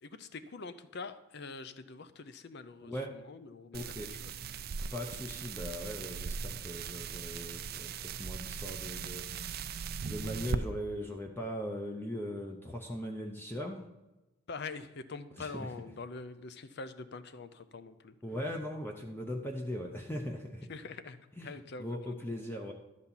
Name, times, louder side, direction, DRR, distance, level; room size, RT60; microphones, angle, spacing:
voice 1, 0.0-4.3 14.5-18.2 20.7-22.2, left 4 dB, 50° left, 12 dB, 0.5 m, -45 dB
voice 2, 2.8-3.2 3.7-4.2 4.9-13.8 15.4-15.7 18.2-20.7 21.4-22.7, equal, 10° left, 2 dB, 0.6 m, -40 dB
sound 1, 3.7-10.6, right 6 dB, 45° right, 0.4 m, -39 dB
12.0 x 4.3 x 7.1 m, 1.0 s
head